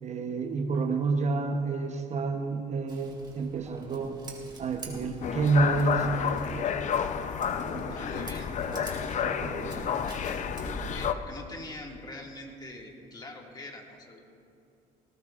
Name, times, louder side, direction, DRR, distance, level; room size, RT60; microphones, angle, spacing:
voice 1, 0.0-4.2 4.6-6.9 7.6-8.3 8.7-9.9, right 4 dB, 40° right, 5 dB, 0.9 m, -30 dB
Scissors, 2.9-11.1, right 2 dB, 25° right, 2.8 m, -45 dB
sound 1, 5.2-11.1, left 8 dB, 45° left, 0.6 m, -30 dB
voice 2, 7.9-8.5 10.8-14.2, left 2 dB, 25° left, 0 dB, 2.1 m, -43 dB
19.0 x 18.5 x 2.5 m, 2.5 s
cardioid pair, 110°, 17 cm